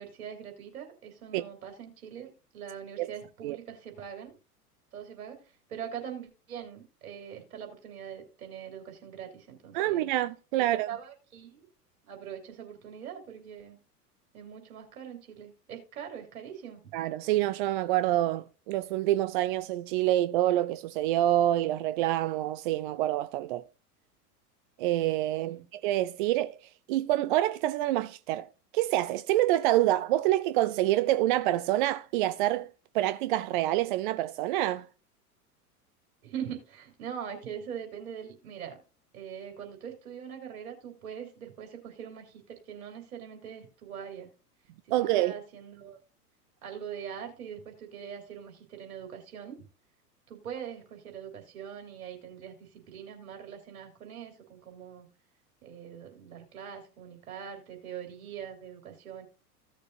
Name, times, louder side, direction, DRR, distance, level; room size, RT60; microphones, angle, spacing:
voice 1, 0.0-4.3 4.9-10.1 10.6-11.7 12.0-13.8 14.3-16.9 25.4-25.6 36.2-38.8 39.1-44.3 45.0-46.0 46.6-49.6 50.3-55.1 55.6-59.2, right 8 dB, 60° right, 3.5 m, -42 dB
voice 2, 9.7-10.9 16.9-23.6 24.8-28.5 28.7-34.9 44.9-45.3, right 14 dB, 35° right, 0.5 m, -27 dB
16.0 x 6.7 x 2.5 m
figure-of-eight pair, 90°, 47 cm